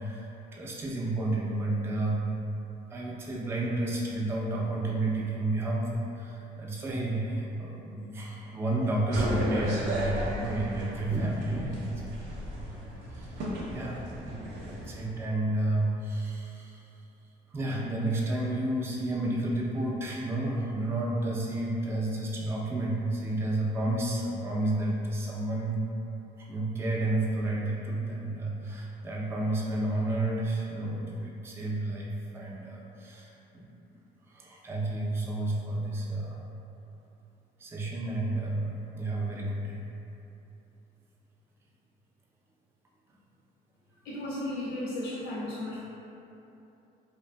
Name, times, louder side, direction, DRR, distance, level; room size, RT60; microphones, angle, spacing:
voice 1, 0.0-2.3 2.9-13.4 13.7-17.1 17.5-25.8 26.4-33.7 34.3-36.4 37.6-39.8, right 2 dB, 15° right, -4 dB, 0.3 m, -31 dB
sound 1, 9.1-15.1, equal, 85° right, 0.5 m, -34 dB
voice 2, 44.0-45.9, left 1 dB, 85° left, -6 dB, 0.4 m, -34 dB
2.6 x 2.4 x 2.2 m, 2.9 s
cardioid pair, 110°, 17 cm